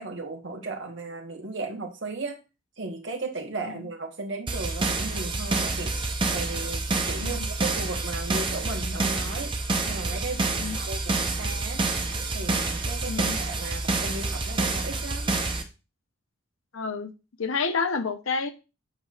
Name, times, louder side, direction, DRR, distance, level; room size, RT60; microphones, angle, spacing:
voice 1, 0.0-2.4 2.8-6.0 6.3-9.5 9.9-11.9 12.3-15.4, right 3 dB, 60° right, 3 dB, 1.2 m, -36 dB
sound 1, 4.5-15.6, right 3 dB, 25° right, 0.7 m, -28 dB
voice 2, 13.1-13.4 16.7-17.1 17.4-18.5, left 4 dB, 75° left, 9 dB, 0.7 m, -29 dB
8.0 x 5.7 x 2.4 m, 0.29 s
head